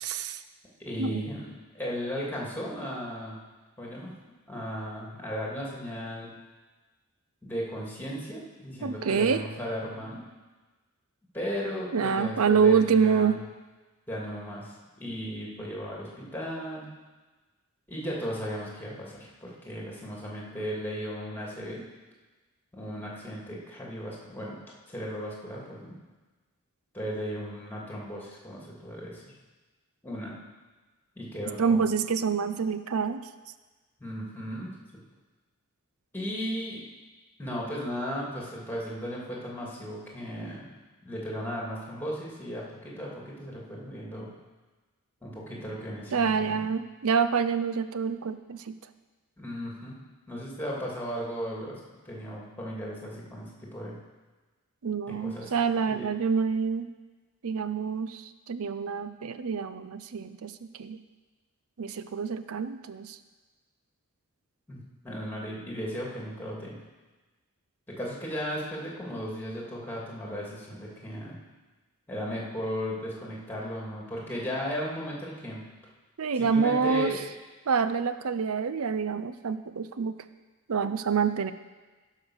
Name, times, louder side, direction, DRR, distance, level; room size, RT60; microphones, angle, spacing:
voice 1, 0.0-0.4 1.0-1.2 8.8-9.4 11.9-13.4 31.6-33.2 46.1-48.8 54.8-56.9 57.4-60.5 60.8-61.0 61.8-63.2 76.2-77.1 77.7-80.2 80.7-81.5, right 6 dB, 70° right, 12 dB, 0.5 m, -26 dB
voice 2, 0.8-1.5 1.7-3.4 3.8-4.1 4.5-6.3 7.4-10.2 11.3-13.4 14.1-16.9 17.9-21.8 22.7-24.6 24.9-26.0 26.9-29.3 30.0-30.3 31.2-31.8 34.0-34.7 36.1-36.8 37.4-40.6 41.0-44.3 45.2-46.7 49.4-50.0 50.3-51.7 52.0-54.0 55.1-55.5 55.8-56.1 64.7-66.8 67.9-71.4 72.1-75.6 76.3-77.2, equal, 10° left, -4 dB, 2.6 m, -36 dB
15.5 x 5.8 x 6.4 m, 1.3 s
head